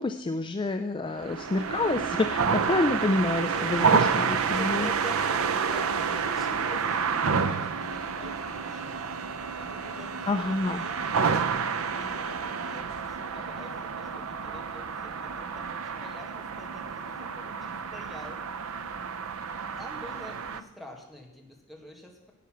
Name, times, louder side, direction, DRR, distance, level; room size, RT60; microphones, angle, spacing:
voice 1, 0.0-4.9 10.3-10.8, left 2 dB, 25° left, 8 dB, 0.4 m, -28 dB
sound 1, 1.1-20.6, right 5 dB, 75° right, 0.6 m, -29 dB
voice 2, 3.5-11.2 11.5-22.3, left 1 dB, ahead, -1 dB, 1.8 m, -47 dB
10.0 x 8.4 x 6.2 m, 0.91 s
head